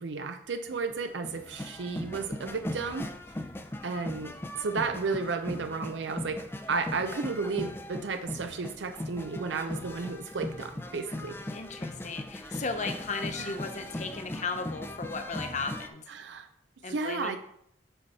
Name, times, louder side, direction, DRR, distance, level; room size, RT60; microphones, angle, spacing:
voice 1, 0.0-3.1 3.8-11.4 12.4-12.6 13.4-13.6 16.1-16.5 16.9-17.4, right 4 dB, 80° right, 8 dB, 0.5 m, -33 dB
sound 1, 0.7-15.9, left 1 dB, 15° left, 0.4 m, -39 dB
voice 2, 11.5-16.0 16.8-17.4, left 4 dB, 40° left, 6 dB, 0.8 m, -36 dB
7.8 x 4.8 x 4.2 m, 0.71 s
head